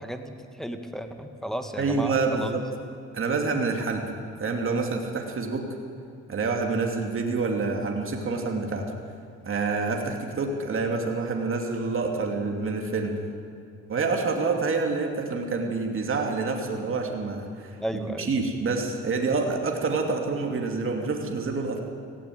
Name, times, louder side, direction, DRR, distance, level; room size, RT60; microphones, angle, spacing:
voice 1, 0.0-2.5 17.8-18.3, equal, ahead, 6 dB, 1.9 m, -34 dB
voice 2, 1.8-2.6 3.1-4.0 4.4-5.6 6.3-8.9 9.4-13.1 13.9-17.8 18.1-21.8, right 4 dB, 45° right, 2 dB, 2.7 m, -27 dB
18.5 x 15.5 x 9.3 m, 2.5 s
cardioid pair, 90°, 30 cm